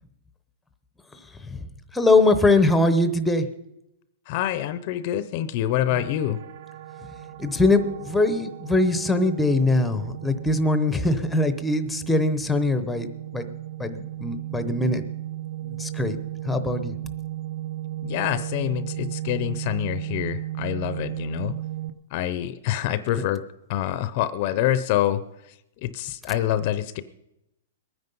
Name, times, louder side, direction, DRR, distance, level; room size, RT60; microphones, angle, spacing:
voice 1, 1.9-3.4 7.4-13.1 13.3-13.5 13.8-15.0 15.7-16.2 16.5-16.9 23.2-23.3, left 2 dB, 5° left, 9 dB, 0.8 m, -22 dB
voice 2, 4.3-6.4 18.0-21.6 22.1-23.4 23.7-25.2 25.8-27.0, left 12 dB, 40° left, 14 dB, 0.6 m, -26 dB
sound 1, 5.9-21.9, right 14 dB, 35° right, 0.8 m, -35 dB
21.5 x 9.6 x 5.4 m, 0.87 s
hypercardioid pair, 165°, 0 cm